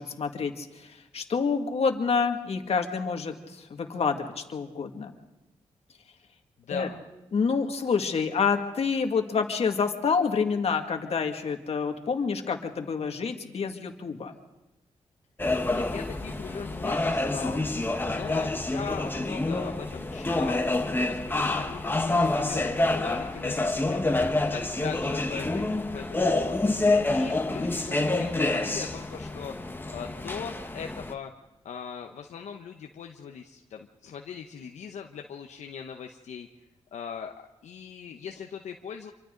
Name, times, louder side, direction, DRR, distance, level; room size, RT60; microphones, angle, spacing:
voice 1, 0.0-5.1 6.7-6.9 7.3-14.3, left 5 dB, 60° left, 4 dB, 2.1 m, -28 dB
voice 2, 6.6-7.0 15.6-17.7 18.0-29.5 29.9-31.3 31.6-36.5 36.9-37.3 37.6-39.1, left 7 dB, 80° left, 3 dB, 1.0 m, -40 dB
sound 1, 15.4-31.1, left 2 dB, 15° left, 1.4 m, -27 dB
27.0 x 24.5 x 3.9 m, 0.97 s
cardioid pair, 80°, 12 cm